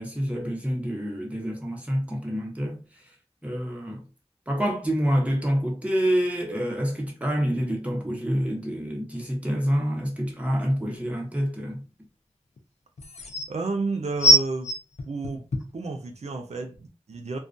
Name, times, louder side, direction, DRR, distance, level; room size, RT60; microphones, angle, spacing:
voice 1, 0.0-2.8 3.4-4.0 4.5-11.8, equal, 10° right, 0.8 m, -27 dB
sound 1, 10.9-11.0 12.6-12.7 13.0-13.5 14.2-15.8 16.5-16.6, right 1 dB, 85° left, 0.4 m, -21 dB
voice 2, 13.5-14.7 15.1-15.5 15.7-17.4, right 3 dB, 85° right, 0.4 m, -31 dB
2.3 x 2.2 x 2.5 m
wide cardioid pair, 50°, 11 cm